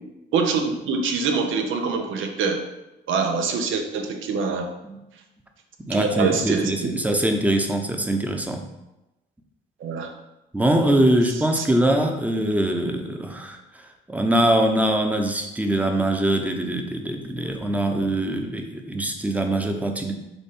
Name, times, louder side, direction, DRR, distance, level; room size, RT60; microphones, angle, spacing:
voice 1, 0.3-2.6 3.1-4.7 5.9-7.2 9.8-10.1 11.5-11.6, right 5 dB, 80° right, 5 dB, 0.9 m, -25 dB
voice 2, 5.8-8.6 10.5-13.6 14.1-20.1, right 1 dB, 5° right, 4 dB, 0.9 m, -23 dB
7.0 x 2.6 x 5.5 m, 0.96 s
cardioid pair, 90°, 20 cm